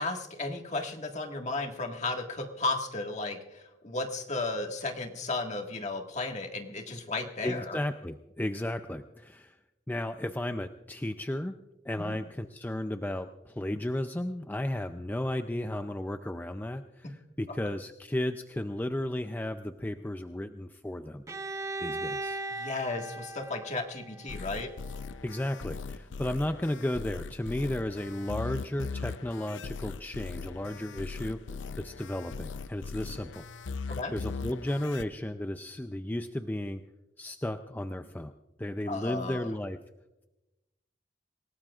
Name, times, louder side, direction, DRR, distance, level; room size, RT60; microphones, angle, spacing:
voice 1, 0.0-7.8 12.0-12.2 22.6-24.7 33.9-34.1 38.9-39.5, left 2 dB, 40° left, 3 dB, 1.8 m, -34 dB
voice 2, 7.4-9.6 9.9-11.6 11.8-21.2 21.8-22.4 25.2-31.4 31.8-33.4 34.1-36.8 37.2-38.3 38.6-39.8, left 1 dB, 10° left, 7 dB, 0.4 m, -34 dB
Bowed string instrument, 21.3-25.1, right 2 dB, 20° right, 0.9 m, -38 dB
sound 1, 24.3-35.1, left 4 dB, 85° left, 0.5 m, -39 dB
27.0 x 17.5 x 2.4 m, 1.0 s
head